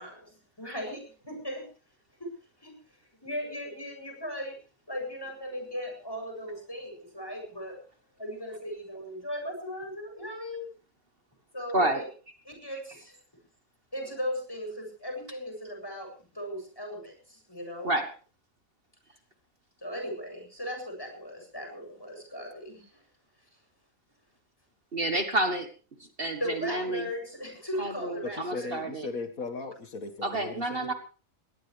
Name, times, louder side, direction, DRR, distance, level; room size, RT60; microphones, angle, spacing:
voice 1, 0.0-1.6 2.2-2.3 2.6-2.7 3.2-4.6 4.9-7.8 8.2-10.7 11.5-12.1 12.5-13.2 13.9-17.9 19.8-23.0 26.4-28.7, equal, 15° left, 3 dB, 7.7 m, -37 dB
voice 2, 24.9-25.7 26.2-27.0 27.8-29.1 30.2-30.9, right 1 dB, 45° right, 7 dB, 1.7 m, -29 dB
voice 3, 28.2-30.9, left 3 dB, 80° left, 8 dB, 2.1 m, -37 dB
20.5 x 18.5 x 3.3 m, 0.36 s
omnidirectional pair, 1.4 m